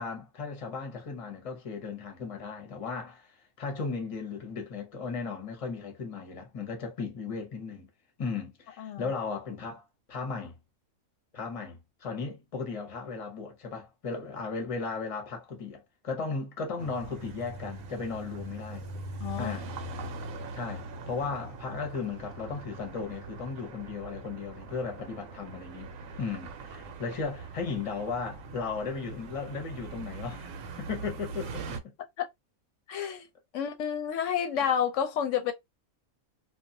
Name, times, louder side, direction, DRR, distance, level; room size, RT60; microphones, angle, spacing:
voice 1, 0.0-7.9 8.2-10.6 11.3-18.9 19.4-19.9 20.5-31.9, left 4 dB, 35° left, 0.6 m, -36 dB
voice 2, 8.8-9.1 19.2-19.5 32.2-32.3 32.9-33.3 33.5-35.5, left 8 dB, 70° left, 0.8 m, -30 dB
sound 1, 16.8-31.8, right 3 dB, 75° right, 0.9 m, -42 dB
2.4 x 2.2 x 2.6 m
omnidirectional pair, 1.5 m